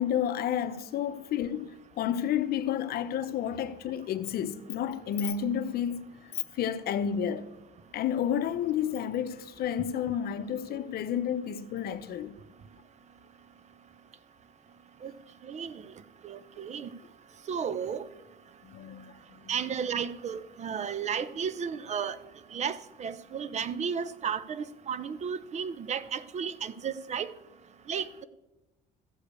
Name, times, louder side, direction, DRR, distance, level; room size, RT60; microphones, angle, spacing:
voice 1, 0.0-6.0 6.5-7.5 7.9-12.4 18.6-19.6, left 9 dB, 65° left, 0.7 m, -31 dB
voice 2, 15.4-15.8 16.2-16.9 17.5-18.0 19.5-22.2 22.5-27.3 27.9-28.1, right 7 dB, 40° right, 0.7 m, -33 dB
14.0 x 5.0 x 8.3 m
cardioid pair, 110°, 17 cm